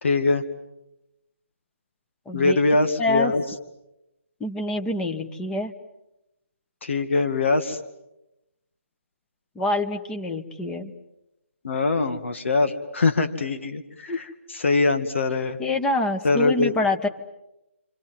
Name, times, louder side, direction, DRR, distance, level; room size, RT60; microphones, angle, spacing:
voice 1, 0.0-0.4 2.3-3.4 6.8-7.8 11.6-15.6 16.2-16.7, left 3 dB, 65° left, 8 dB, 2.2 m, -23 dB
voice 2, 2.3-2.6 3.0-3.3 4.4-5.7 9.5-10.9 14.1-14.2 15.6-17.1, left 2 dB, 10° left, 6 dB, 1.4 m, -26 dB
29.0 x 26.5 x 7.7 m, 0.92 s
figure-of-eight pair, 150°, 7 cm